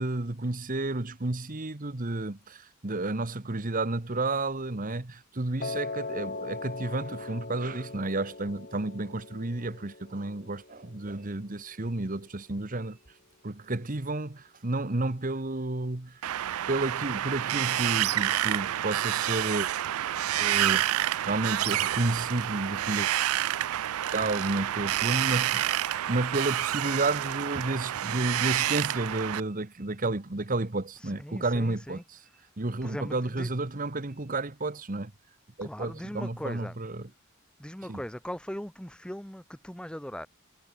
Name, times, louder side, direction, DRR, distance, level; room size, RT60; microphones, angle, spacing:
voice 1, 0.0-13.0 13.4-16.2 16.7-19.7 20.4-23.1 24.1-32.2 32.6-35.1 35.6-37.1 37.9-38.0, right 2 dB, 40° right, 1.2 m, -31 dB
Piano, 5.6-11.7, left 3 dB, 40° left, 2.3 m, -40 dB
Wind, 16.2-29.4, right 12 dB, 80° right, 0.4 m, -28 dB
voice 2, 31.0-32.0 32.8-33.5 35.6-36.8 37.6-40.3, equal, 5° left, 1.0 m, -39 dB
head